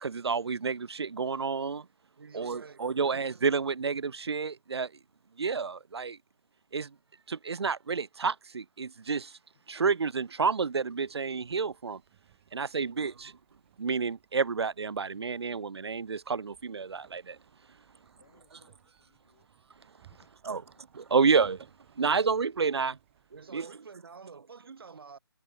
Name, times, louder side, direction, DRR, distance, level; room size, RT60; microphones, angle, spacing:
voice 1, 0.0-1.9 2.3-4.9 5.4-6.2 6.7-6.9 7.3-9.3 9.7-12.0 12.5-13.3 13.8-17.4 20.5-20.6 21.1-21.6 22.0-23.0 23.5-23.7, right 5 dB, 80° right, 0.8 m, -29 dB
voice 2, 2.2-3.2 11.1-11.2 12.7-13.4 23.3-25.2, right 5 dB, 60° right, 5.0 m, -49 dB
sound 1, 11.0-23.6, right 14 dB, 30° right, 7.7 m, -64 dB
voice 3, 18.2-19.5 20.1-21.2, left 8 dB, 40° left, 7.8 m, -68 dB
hypercardioid pair, 160°, 14 cm